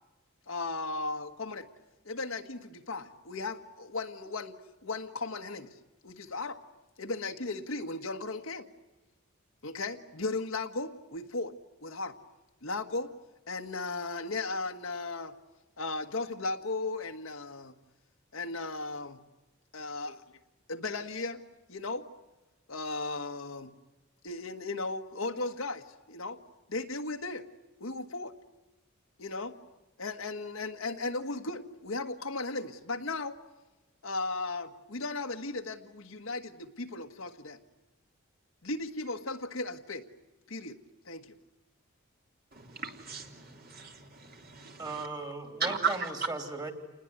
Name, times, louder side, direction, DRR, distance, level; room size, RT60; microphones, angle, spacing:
voice 1, 0.5-1.7 2.0-5.7 6.0-6.6 7.0-8.7 9.6-11.5 11.8-12.1 12.6-13.1 13.5-15.3 15.8-17.7 18.3-19.2 19.7-20.1 20.7-21.4 21.7-22.0 22.7-23.7 24.2-26.4 26.7-27.4 27.8-28.3 29.2-29.5 30.0-33.4 34.0-37.6 38.6-40.0 40.5-40.8 41.0-41.3, left 3 dB, 75° left, 6 dB, 1.5 m, -36 dB
voice 2, 42.5-44.9 45.6-45.8, right 5 dB, 45° right, 3 dB, 3.1 m, -39 dB
voice 3, 44.8-46.7, right 3 dB, 20° right, 6 dB, 3.1 m, -37 dB
29.0 x 20.5 x 9.6 m, 1.1 s
head